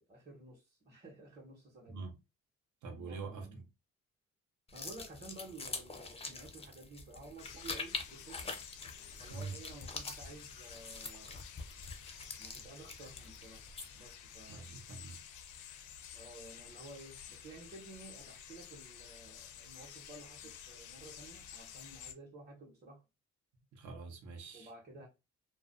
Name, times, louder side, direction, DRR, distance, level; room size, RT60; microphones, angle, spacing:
voice 1, 0.0-2.0 2.9-3.6 4.7-8.5 9.2-11.4 12.4-13.7 13.9-14.8 16.1-23.0 24.5-25.1, right 2 dB, 25° right, 1.0 m, -53 dB
voice 2, 1.9-2.2 2.8-3.6 9.3-9.6 14.5-15.2 23.7-24.7, right 4 dB, 70° right, 0.9 m, -45 dB
sound 1, 4.7-14.1, left 4 dB, 20° left, 0.5 m, -45 dB
sound 2, 7.4-22.1, left 8 dB, 75° left, 0.5 m, -52 dB
2.4 x 2.1 x 2.5 m
cardioid pair, 90°, 30 cm